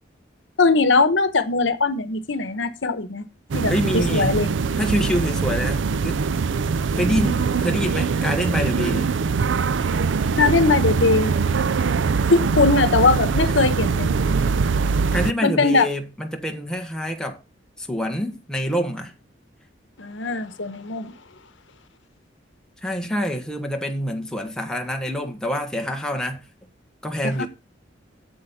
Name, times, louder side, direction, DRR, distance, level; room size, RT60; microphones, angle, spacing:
voice 1, 0.6-3.2 3.5-4.5 10.4-11.3 12.3-14.1 15.4-15.9 20.0-21.1 27.2-27.5, left 3 dB, 80° left, 1.1 m, -20 dB
sound 1, 3.5-15.3, right 5 dB, 75° right, 0.5 m, -22 dB
voice 2, 3.7-4.4 4.7-6.2 6.9-9.2 15.1-17.4 17.8-19.1 22.8-26.4 27.0-27.5, equal, 5° left, 1.4 m, -26 dB
8.7 x 7.4 x 5.5 m
head